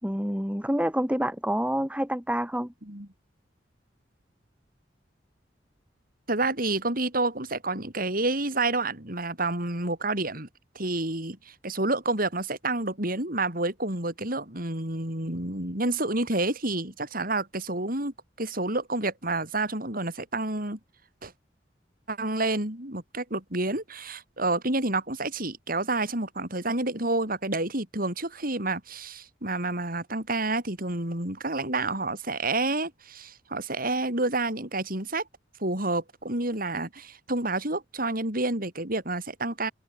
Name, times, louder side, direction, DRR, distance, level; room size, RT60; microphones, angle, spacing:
voice 1, 0.0-2.7, equal, 5° right, 7.4 m, -27 dB
voice 2, 6.3-10.5 10.7-20.8 21.2-21.3 22.1-35.2 35.6-39.7, right 2 dB, 50° right, 7.7 m, -29 dB
head